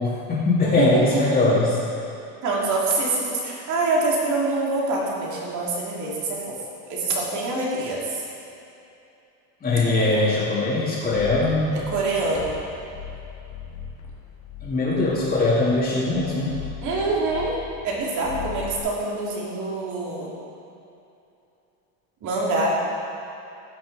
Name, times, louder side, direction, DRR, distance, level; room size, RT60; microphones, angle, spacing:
voice 1, 0.0-1.8 9.6-11.8 14.6-16.6, left 2 dB, 20° left, -10 dB, 2.3 m, -21 dB
voice 2, 0.6-1.2 2.4-6.6 6.9-8.2 9.8-10.2 11.9-12.6 16.8-17.5 17.8-20.3 22.2-22.7, right 2 dB, 45° right, -4 dB, 2.9 m, -25 dB
sound 1, 11.0-17.9 18.2-18.8, left 8 dB, 90° left, 2.6 m, -38 dB
16.5 x 6.1 x 4.8 m, 2.8 s
supercardioid pair, 135°, 43 cm